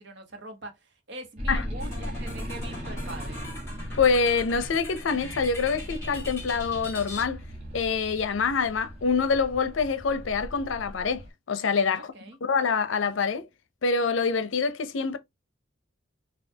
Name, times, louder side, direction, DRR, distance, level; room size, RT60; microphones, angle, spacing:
voice 1, 0.0-3.5 11.9-12.4, right 2 dB, 65° right, 1.0 m, -43 dB
sound 1, 1.4-11.3, equal, 35° right, 1.2 m, -37 dB
sound 2, 1.8-7.2, left 2 dB, 15° left, 1.8 m, -42 dB
voice 2, 3.9-7.4 7.7-12.1 12.4-13.5 13.8-15.2, left 5 dB, 75° left, 0.5 m, -25 dB
4.3 x 2.3 x 2.7 m
head